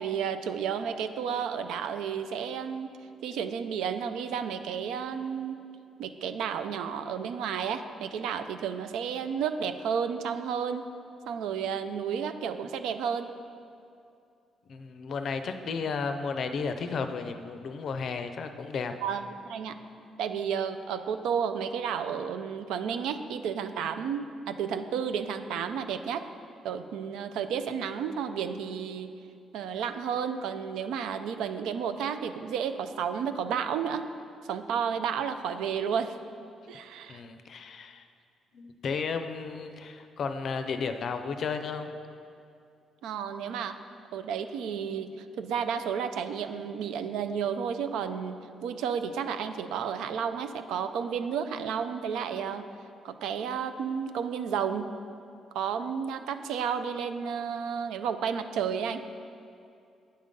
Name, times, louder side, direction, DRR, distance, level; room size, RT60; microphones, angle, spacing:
voice 1, 0.0-2.9 3.2-5.6 6.0-10.9 11.3-13.3 19.0-19.8 20.2-26.2 26.6-29.1 29.5-34.0 34.5-36.1 36.7-37.2 43.0-43.8 44.1-52.7 53.0-54.9 55.5-59.0, right 7 dB, 85° right, 8 dB, 0.3 m, -32 dB
voice 2, 14.7-18.9 37.1-38.1 38.5-41.9, left 5 dB, 60° left, 8 dB, 0.4 m, -33 dB
8.6 x 3.7 x 5.3 m, 2.5 s
cardioid pair, 90°, 0 cm